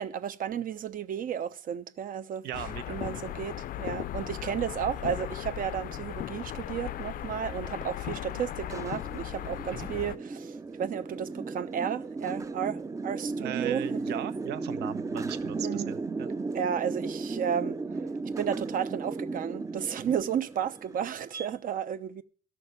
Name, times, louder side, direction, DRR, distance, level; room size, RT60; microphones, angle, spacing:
voice 1, 0.0-14.3 15.6-15.9 16.5-18.0 18.4-22.2, right 8 dB, 55° right, 1.0 m, -33 dB
voice 2, 2.4-3.2 4.4-4.6 9.7-9.9 13.4-16.3 20.1-20.2, right 11 dB, 75° right, 1.1 m, -38 dB
sound 1, 2.5-10.2, left 12 dB, 55° left, 0.5 m, -37 dB
sound 2, 5.3-21.5, right 3 dB, 20° right, 0.6 m, -36 dB
13.0 x 6.4 x 9.5 m
cardioid pair, 110°, 17 cm